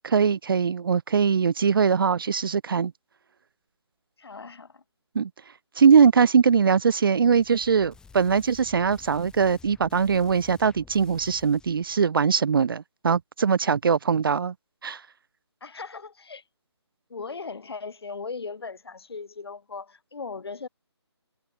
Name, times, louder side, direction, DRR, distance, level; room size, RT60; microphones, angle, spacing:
voice 1, 0.0-2.9 5.2-5.3 5.8-14.5 14.8-15.0, right 6 dB, 50° right, 0.4 m, -21 dB
voice 2, 4.2-4.8 15.6-16.4 17.1-20.7, left 4 dB, 60° left, 5.9 m, -38 dB
sound 1, 7.2-12.0, left 5 dB, 5° left, 4.6 m, -52 dB
figure-of-eight pair, 150°, 15 cm